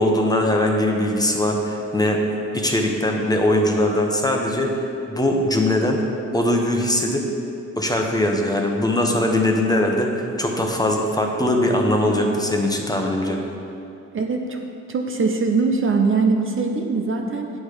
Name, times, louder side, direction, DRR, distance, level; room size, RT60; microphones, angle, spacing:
voice 1, 0.0-2.2 2.5-6.0 6.3-7.3 7.8-13.4, left 1 dB, 10° left, 1 dB, 1.1 m, -21 dB
voice 2, 14.1-14.6 14.9-17.5, right 4 dB, 45° right, 3 dB, 0.7 m, -21 dB
8.8 x 6.2 x 5.1 m, 2.7 s
cardioid pair, 80°, 30 cm